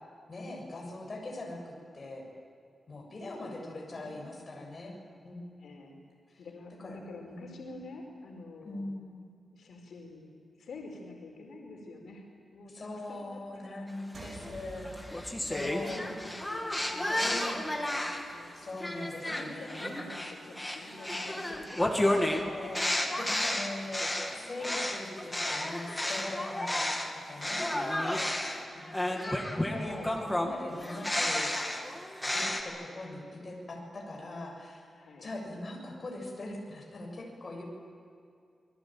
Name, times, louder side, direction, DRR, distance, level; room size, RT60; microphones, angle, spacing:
voice 1, 0.3-2.3 2.9-4.9 5.2-5.4 6.3-6.4 6.8-7.0 7.3-7.6 8.6-9.2 12.7-16.1 17.2-17.6 18.5-20.0 22.1-26.8 27.1-27.7 28.7-29.4 29.6-31.5 32.3-34.9 35.2-37.6, left 2 dB, 35° left, -1 dB, 7.2 m, -41 dB
voice 2, 3.4-4.3 5.6-6.0 6.4-8.9 9.5-10.3 10.6-12.2 12.5-13.9 15.5-18.6 19.2-22.3 28.2-28.7 34.9-35.3, left 2 dB, 90° left, 1 dB, 5.0 m, -48 dB
sound 1, 14.1-19.0, right 1 dB, 45° right, 2.5 m, -50 dB
sound 2, 14.2-18.3 18.8-27.1 27.4-32.6, left 1 dB, 10° left, 2.6 m, -32 dB
28.0 x 21.5 x 9.2 m, 2.4 s
wide cardioid pair, 170°, 0 cm